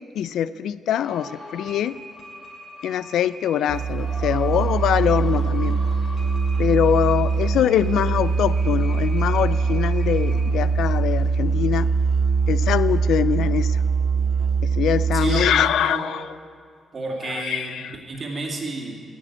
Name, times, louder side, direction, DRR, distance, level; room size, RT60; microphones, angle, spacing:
voice 1, 0.2-2.0 2.8-5.8 6.6-11.9 12.5-13.8 14.6-16.3 17.2-17.9, left 10 dB, 90° left, 17 dB, 0.3 m, -23 dB
sound 1, 1.0-10.4, left 1 dB, 35° left, 2.8 m, -41 dB
Musical instrument, 3.7-15.7, right 5 dB, 60° right, 0.4 m, -22 dB
voice 2, 15.1-16.1 16.9-18.9, right 3 dB, 35° right, -1 dB, 2.2 m, -30 dB
12.5 x 8.1 x 8.6 m, 2.2 s
cardioid pair, 155°, 0 cm